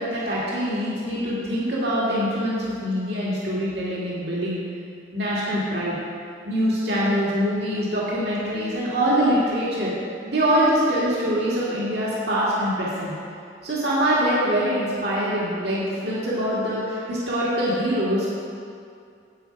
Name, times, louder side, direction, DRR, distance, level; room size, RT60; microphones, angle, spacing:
voice 1, 0.0-4.6 5.1-6.0 6.4-9.9 10.3-13.1 13.6-18.3, equal, 60° right, -7 dB, 2.2 m, -24 dB
10.5 x 8.3 x 4.7 m, 2.4 s
head